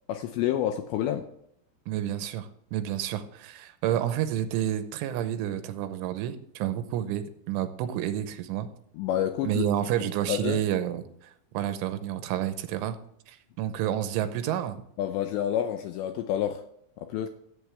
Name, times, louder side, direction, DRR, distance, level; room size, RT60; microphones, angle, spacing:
voice 1, 0.1-1.2 8.9-9.6 10.3-10.6 15.0-16.6 17.0-17.3, left 11 dB, 85° left, 7 dB, 2.5 m, -28 dB
voice 2, 1.9-8.7 9.4-13.0 13.3-14.8, right 11 dB, 85° right, 10 dB, 3.2 m, -30 dB
14.5 x 8.1 x 3.5 m, 0.72 s
omnidirectional pair, 5.7 m